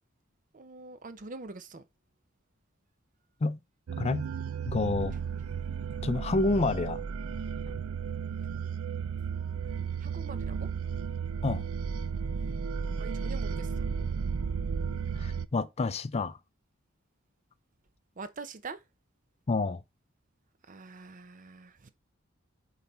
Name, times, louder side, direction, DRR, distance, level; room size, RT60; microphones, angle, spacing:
voice 1, 0.5-1.8 7.7-7.8 10.0-10.7 12.4-12.5 13.0-13.9 18.2-18.8 20.7-21.9, right 3 dB, 40° right, 0.7 m, -44 dB
sound 1, 3.9-15.5, right 6 dB, 85° right, 0.4 m, -34 dB
voice 2, 4.7-5.2 6.0-7.0 11.4-11.6 15.2-16.4 19.5-19.8, left 3 dB, 30° left, 0.4 m, -28 dB
5.5 x 4.1 x 4.3 m
head